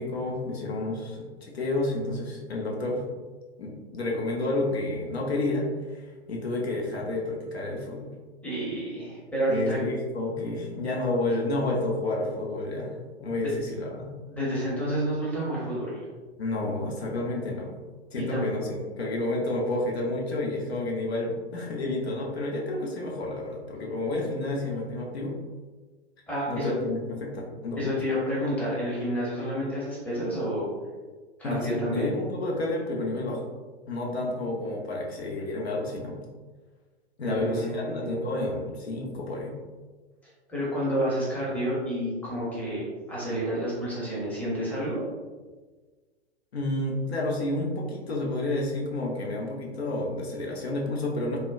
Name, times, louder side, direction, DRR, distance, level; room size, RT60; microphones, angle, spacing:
voice 1, 0.0-3.1 3.6-8.1 9.5-12.9 13.2-14.1 16.4-17.8 18.1-25.3 26.5-27.3 27.6-27.9 31.4-33.4 33.9-36.2 37.2-39.5 46.5-51.4, left 2 dB, 70° left, -1 dB, 0.7 m, -30 dB
voice 2, 8.4-9.8 13.4-13.5 14.3-16.0 18.2-18.4 26.3-26.7 27.8-30.7 31.4-32.1 37.2-38.4 40.5-45.0, equal, 5° left, -7 dB, 0.7 m, -29 dB
3.7 x 2.1 x 2.3 m, 1.4 s
figure-of-eight pair, 110°, 33 cm